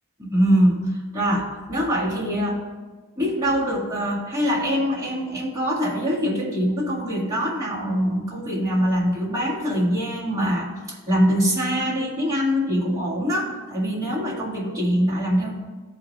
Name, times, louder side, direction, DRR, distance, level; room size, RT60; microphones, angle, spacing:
voice 1, 0.2-2.6 3.2-15.6, equal, 15° right, -7 dB, 1.8 m, -23 dB
14.5 x 4.9 x 3.2 m, 1.3 s
head